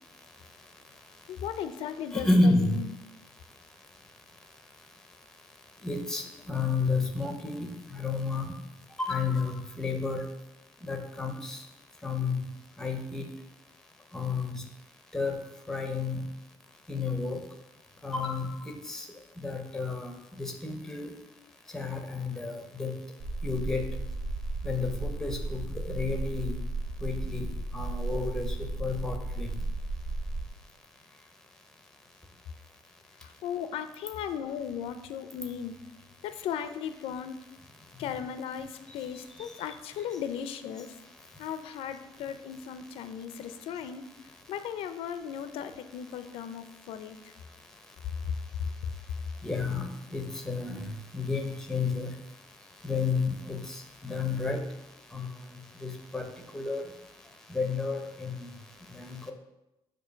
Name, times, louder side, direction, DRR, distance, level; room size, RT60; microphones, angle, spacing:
voice 1, 1.3-2.9 33.2-35.7 36.2-37.4 38.0-40.9 41.4-44.1 44.5-47.3 48.3-48.7, left 8 dB, 90° left, 10 dB, 0.4 m, -36 dB
voice 2, 2.1-2.8 5.8-8.5 9.0-10.2 10.8-11.6 12.0-12.4 12.8-13.3 14.1-14.6 15.1-15.4 15.7-16.2 16.9-17.4 18.0-18.5 18.9-19.0 19.4-20.1 20.4-21.1 21.7-23.0 23.4-23.9 24.6-26.5 27.0-27.5 27.7-28.5 28.8-29.5 49.4-50.9 51.1-52.1 52.8-54.6 55.1-55.3 55.8-56.2 56.5-56.8 57.5-58.5 59.0-59.3, left 3 dB, 5° left, 4 dB, 0.6 m, -30 dB
sound 1, 23.2-30.5, right 2 dB, 90° right, 1.7 m, -34 dB
6.7 x 2.7 x 5.6 m, 0.92 s
cardioid pair, 160°, 10 cm